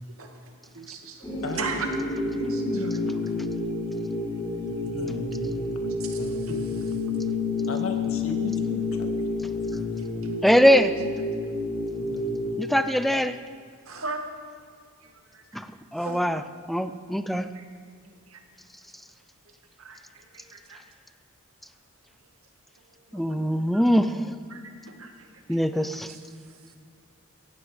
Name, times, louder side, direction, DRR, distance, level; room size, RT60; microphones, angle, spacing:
voice 1, 0.2-3.2 6.0-7.0 8.9-9.1 10.0-10.3 13.9-14.2 15.0-15.6 16.0-16.3 17.5-17.7 18.0-18.4 19.8-20.9 22.9-23.3 23.6-23.8 24.5-26.8, right 3 dB, 85° right, 4 dB, 2.1 m, -40 dB
sound 1, 1.2-12.6, left 3 dB, 20° left, 3.3 m, -29 dB
voice 2, 2.4-3.3 4.7-6.6 7.7-9.1 9.4-10.2 11.9-12.6, left 1 dB, 75° left, 5 dB, 1.8 m, -37 dB
voice 3, 10.4-10.9 12.6-13.4 15.5-15.7 15.9-16.4 16.7-17.5 23.1-24.2 25.5-26.1, equal, ahead, 11 dB, 0.5 m, -22 dB
18.0 x 15.0 x 5.0 m, 2.1 s
head